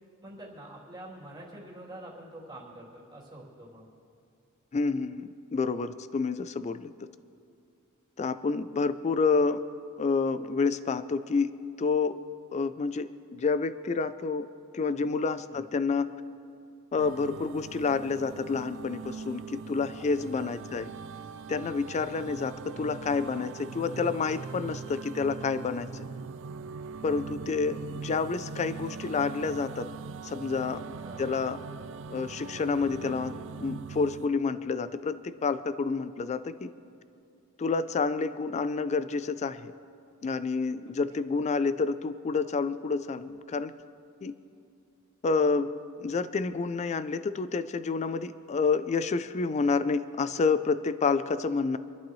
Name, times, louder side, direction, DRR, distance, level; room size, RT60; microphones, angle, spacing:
voice 1, 0.2-3.9 15.5-15.6 20.0-20.1 20.4-20.5 31.0-31.2 40.9-41.0, right 1 dB, 20° right, -5 dB, 3.0 m, -46 dB
voice 2, 4.7-6.9 8.2-9.6 10.0-11.5 11.8-12.2 12.5-14.5 14.7-16.1 16.9-20.9 21.5-26.1 27.0-29.9 30.2-30.8 31.2-31.6 32.1-36.7 37.6-39.7 40.2-43.7 44.2-44.3 45.2-45.7 46.0-51.8, left 4 dB, 30° left, 13 dB, 0.3 m, -29 dB
sound 1, 17.0-34.3, right 5 dB, 60° right, 0.4 m, -41 dB
26.0 x 11.5 x 3.1 m, 2.5 s
head